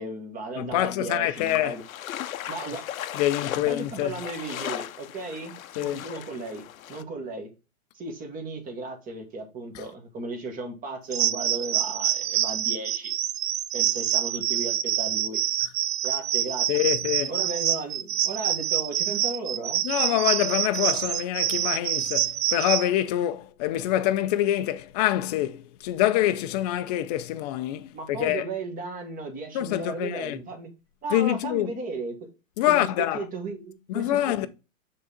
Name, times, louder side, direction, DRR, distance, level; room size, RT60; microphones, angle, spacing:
voice 1, 0.0-1.8 2.5-2.8 3.6-6.6 6.9-7.5 7.9-13.1 13.7-15.4 16.0-16.7 17.3-19.8 27.9-30.7 31.0-32.3 32.6-34.5, right 3 dB, 20° right, 1.5 m, -35 dB
voice 2, 0.6-1.8 3.1-4.2 5.8-6.0 9.7-9.8 16.7-17.4 19.8-28.4 29.5-30.4 31.1-31.7 32.6-33.2 33.9-34.5, left 13 dB, 30° left, 0.5 m, -25 dB
sound 1, 1.3-7.0, left 11 dB, 80° left, 0.6 m, -37 dB
sound 2, 11.1-22.9, right 11 dB, 65° right, 0.6 m, -26 dB
6.2 x 3.8 x 4.2 m
hypercardioid pair, 130°, 41 cm